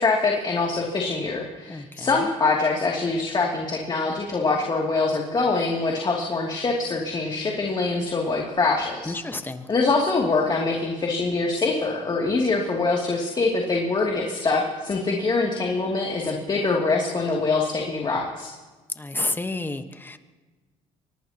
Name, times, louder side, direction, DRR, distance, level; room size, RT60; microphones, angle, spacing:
voice 1, 0.0-9.1 9.7-18.5, left 3 dB, 35° left, -1 dB, 2.8 m, -24 dB
voice 2, 1.7-2.1 9.1-9.7 19.0-20.2, left 2 dB, 15° left, 8 dB, 1.3 m, -30 dB
24.5 x 18.5 x 3.0 m, 1.3 s
supercardioid pair, 85°, 14 cm